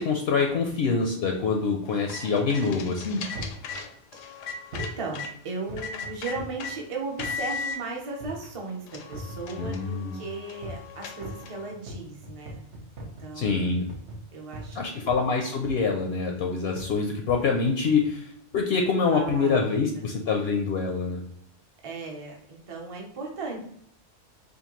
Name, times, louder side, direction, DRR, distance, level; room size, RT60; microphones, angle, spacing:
voice 1, 0.0-3.2 9.6-10.2 13.3-13.9 14.7-21.2, left 4 dB, 65° left, 2 dB, 0.7 m, -25 dB
sound 1, 1.9-5.3 5.8-6.7 7.2-7.8 8.4-8.5 8.9-11.7, left 4 dB, 85° left, 0.9 m, -37 dB
sound 2, 3.3-3.7 4.7-5.0 5.7-6.6 7.2-7.4 8.2-8.5 9.1-9.9 10.6-10.9 11.2-14.8 15.1-15.3 15.6-16.0 16.8-17.0 17.8-18.1 18.7-18.8, right 1 dB, 70° right, 1.0 m, -40 dB
voice 2, 4.1-4.5 4.7-12.7 13.2-13.8 14.3-15.2 19.1-19.7 20.0-20.1 21.8-23.6, right 3 dB, 30° right, 0 dB, 0.7 m, -37 dB
5.1 x 2.2 x 2.9 m, 0.67 s
omnidirectional pair, 1.3 m